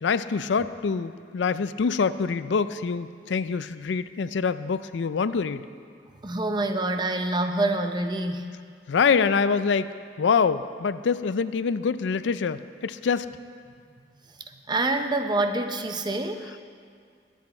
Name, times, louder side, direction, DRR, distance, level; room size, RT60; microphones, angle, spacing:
voice 1, 0.0-5.6 8.9-9.9 10.2-13.3, left 5 dB, 85° left, 14 dB, 0.4 m, -25 dB
voice 2, 6.1-8.5 14.5-16.5, right 2 dB, 25° right, 6 dB, 0.7 m, -26 dB
21.0 x 8.3 x 4.3 m, 2.2 s
head